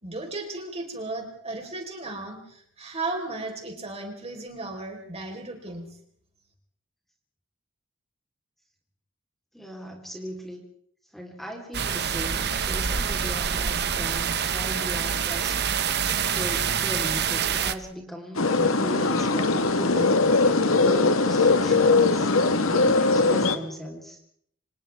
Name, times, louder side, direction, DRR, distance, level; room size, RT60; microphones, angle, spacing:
voice 1, 0.0-5.9, right 2 dB, 30° right, 2 dB, 4.6 m, -35 dB
voice 2, 9.5-10.6 11.1-15.6 16.3-18.4 18.6-20.2 20.7-24.2, equal, ahead, 0 dB, 3.9 m, -37 dB
sound 1, 11.7-17.7, right 7 dB, 55° right, 1.2 m, -26 dB
sound 2, 18.3-23.6, left 3 dB, 80° left, 1.7 m, -21 dB
30.0 x 26.5 x 3.6 m, 0.66 s
head